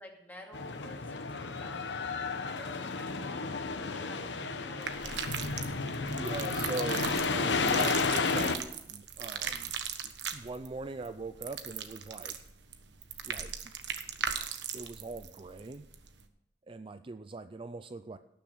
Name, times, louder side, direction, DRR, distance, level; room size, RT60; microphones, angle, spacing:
voice 1, 0.0-3.6 3.9-5.7, left 1 dB, 10° left, 0 dB, 2.4 m, -52 dB
sound 1, 0.5-8.6, left 4 dB, 85° left, 1.0 m, -32 dB
sound 2, 4.8-16.2, right 7 dB, 80° right, 1.2 m, -39 dB
voice 2, 6.1-9.8 10.3-12.4 13.3-13.7 14.7-15.8 16.7-18.2, right 3 dB, 30° right, 10 dB, 0.4 m, -41 dB
18.0 x 6.8 x 6.3 m, 0.83 s
head